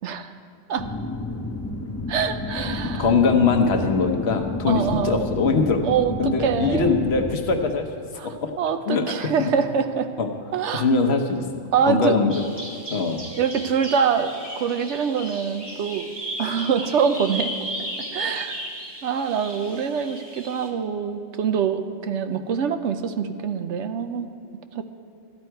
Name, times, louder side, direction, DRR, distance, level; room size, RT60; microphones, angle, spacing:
voice 1, 0.0-0.3 0.7-0.9 2.1-3.1 4.7-5.3 5.8-7.1 8.2-8.3 8.6-10.1 10.5-10.8 11.7-12.1 13.4-16.1 16.4-17.5 18.1-18.5 19.0-24.3 24.8-24.9, right 7 dB, 75° right, 9 dB, 0.9 m, -24 dB
sound 1, 0.8-7.4, left 2 dB, 20° left, 0.4 m, -31 dB
voice 2, 2.6-5.8 6.2-7.9 8.2-8.5 8.9-9.5 10.2-10.3 10.7-11.4 11.9-12.5 12.9-13.2, left 4 dB, 60° left, 5 dB, 1.1 m, -22 dB
Bird vocalization bird call bird song, 12.3-20.7, right 1 dB, 20° right, 1.4 m, -35 dB
13.5 x 9.6 x 4.6 m, 2.4 s
omnidirectional pair, 1.3 m